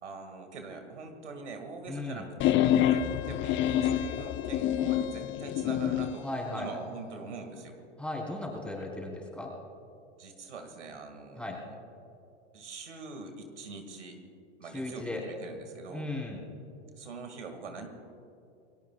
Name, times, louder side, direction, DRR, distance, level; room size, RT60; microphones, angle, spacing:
voice 1, 0.0-6.3 6.5-7.8 10.2-11.7 12.5-14.2 14.6-16.1 17.0-17.9, right 4 dB, 85° right, 5 dB, 2.2 m, -44 dB
voice 2, 1.9-2.3 6.2-6.7 8.0-9.5 11.4-11.6 14.7-15.2 15.9-16.4, left 2 dB, 5° left, -2 dB, 4.4 m, -36 dB
sound 1, 2.4-6.2, left 11 dB, 35° left, 0.8 m, -27 dB
28.5 x 19.5 x 2.4 m, 2.7 s
hypercardioid pair, 100°, 34 cm